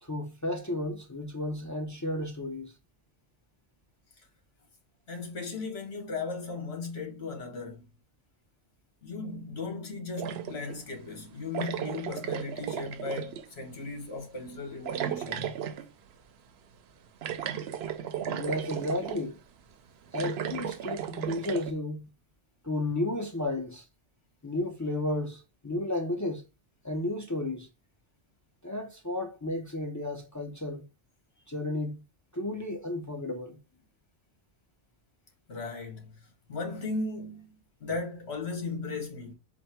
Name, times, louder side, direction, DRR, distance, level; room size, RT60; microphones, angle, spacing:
voice 1, 0.0-2.7 18.3-19.4 20.1-22.1 22.6-23.9 24.4-26.5 26.8-27.7 28.6-30.8 31.5-32.0 32.3-33.6, left 1 dB, 30° left, 0.3 m, -33 dB
voice 2, 5.1-7.9 9.0-15.6 35.5-39.3, left 3 dB, 60° left, 1.5 m, -37 dB
sound 1, 10.2-10.8 11.5-13.5 14.9-15.9 17.2-19.2 20.1-21.7, right 9 dB, 65° right, 0.7 m, -35 dB
4.3 x 2.1 x 4.4 m
omnidirectional pair, 1.2 m